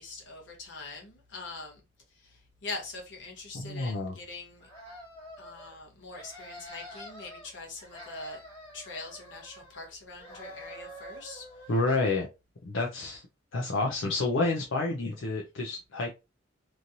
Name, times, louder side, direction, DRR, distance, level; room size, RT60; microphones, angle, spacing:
voice 1, 0.0-1.8 2.2-4.7 5.4-8.4 8.7-11.5, left 3 dB, 65° left, 1.1 m, -43 dB
voice 2, 3.5-4.1 11.7-12.3 12.6-13.2 13.5-16.1, left 3 dB, 80° left, 0.6 m, -29 dB
sound 1, 4.6-5.7 6.1-7.5 7.8-9.9 10.2-12.2, equal, 25° left, 1.6 m, -47 dB
3.1 x 2.7 x 2.6 m
head